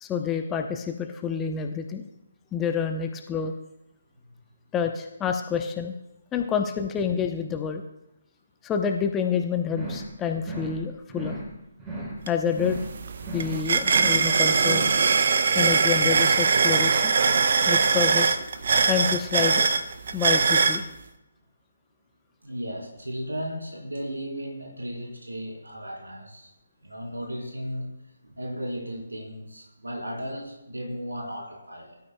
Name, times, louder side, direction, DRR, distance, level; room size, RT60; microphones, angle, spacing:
voice 1, 0.0-2.1 2.5-3.5 4.7-6.0 6.3-7.8 8.6-11.4 12.3-12.8 13.3-14.9 15.5-17.1 17.7-18.4 18.9-19.7 20.1-20.8, left 7 dB, 15° left, 5 dB, 0.8 m, -28 dB
sound 1, 9.7-10.1 10.4-10.8 11.1-11.5 11.8-12.2 12.5-12.9 13.2-13.6 13.9-14.3 14.6-15.0, right 1 dB, 20° right, 3.5 m, -36 dB
sound 2, 12.3-12.4 12.7-20.8, right 5 dB, 50° right, 0.9 m, -22 dB
voice 2, 22.4-26.5 26.8-27.9 28.2-32.0, equal, 85° right, -1 dB, 4.0 m, -35 dB
22.5 x 12.5 x 2.3 m, 0.91 s
figure-of-eight pair, 140°, 0 cm